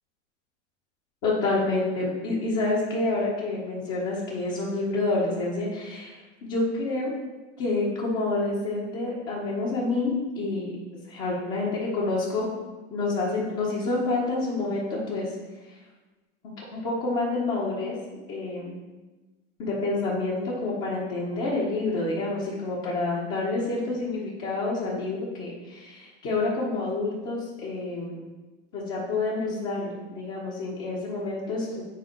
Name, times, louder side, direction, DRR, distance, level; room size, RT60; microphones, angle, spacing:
voice 1, 1.2-7.1 7.6-10.7 11.1-12.5 12.9-15.3 15.7-15.8 16.7-18.0 18.3-18.8 19.6-28.2 28.7-31.8, left 2 dB, 45° left, -6 dB, 1.9 m, -28 dB
8.0 x 4.3 x 4.9 m, 1.2 s
hypercardioid pair, 115°, 37 cm